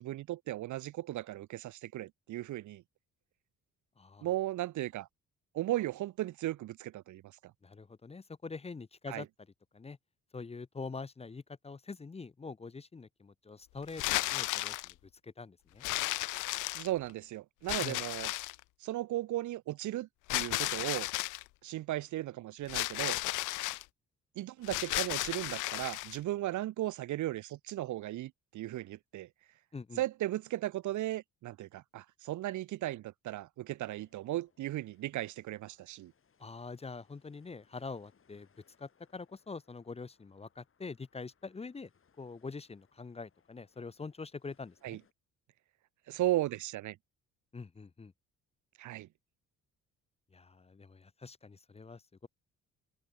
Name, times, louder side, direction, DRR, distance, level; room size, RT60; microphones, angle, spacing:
voice 1, 0.0-2.8 4.2-5.1 5.5-7.2 9.1-9.2 16.7-18.3 18.8-21.1 21.6-23.2 24.4-29.3 30.0-36.1 44.8-45.0 46.1-47.0 48.8-49.1, right 15 dB, 75° right, 0.9 m, -36 dB
voice 2, 4.0-4.3 7.6-9.3 9.7-10.0 10.3-15.0 15.2-15.8 17.8-18.0 29.7-30.0 36.4-38.5 38.8-41.9 42.2-45.0 47.5-48.1 50.3-52.3, left 4 dB, 20° left, 0.8 m, -45 dB
sound 1, 13.9-14.9 15.8-17.1 17.7-18.6 20.3-21.4 22.7-23.8 24.6-26.2, left 20 dB, 85° left, 0.5 m, -34 dB
sound 2, 33.9-45.1, left 6 dB, 45° left, 7.2 m, -73 dB
cardioid pair, 90°, 30 cm